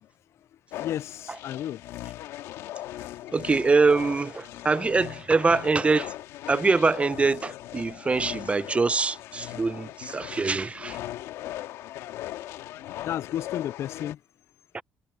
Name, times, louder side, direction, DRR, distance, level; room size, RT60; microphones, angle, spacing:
sound 1, 0.7-14.1, left 14 dB, 85° left, 2.0 m, -39 dB
voice 1, 0.8-1.8 13.0-14.2, left 11 dB, 65° left, 0.4 m, -32 dB
voice 2, 3.3-6.1 6.5-11.0, right 4 dB, 25° right, 0.7 m, -24 dB
supercardioid pair, 75°, 5 cm